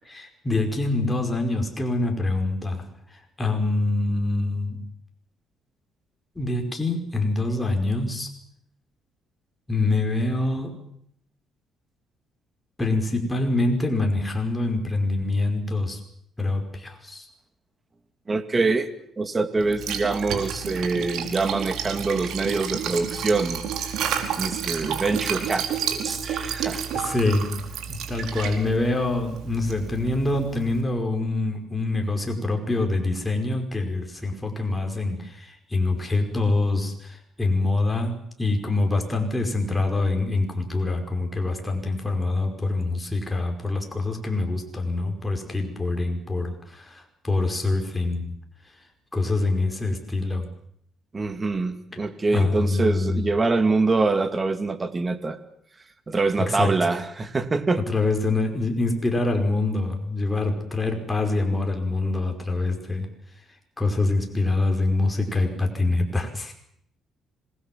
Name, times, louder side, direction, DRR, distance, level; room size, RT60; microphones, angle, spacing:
voice 1, 0.0-4.8 6.3-8.3 9.7-10.8 12.8-16.0 16.4-17.2 26.9-48.4 49.1-50.5 51.9-52.0 52.3-53.3 56.4-56.9 57.9-63.1 63.8-66.5, left 2 dB, 10° left, 3 dB, 5.2 m, -25 dB
voice 2, 18.3-18.9 19.2-23.9 24.4-26.8 51.1-55.4 56.1-57.8, right 3 dB, 25° right, 9 dB, 2.5 m, -25 dB
Liquid, 19.6-30.8, right 8 dB, 75° right, 4.6 m, -31 dB
26.5 x 20.0 x 7.6 m, 0.69 s
cardioid pair, 110°, 0 cm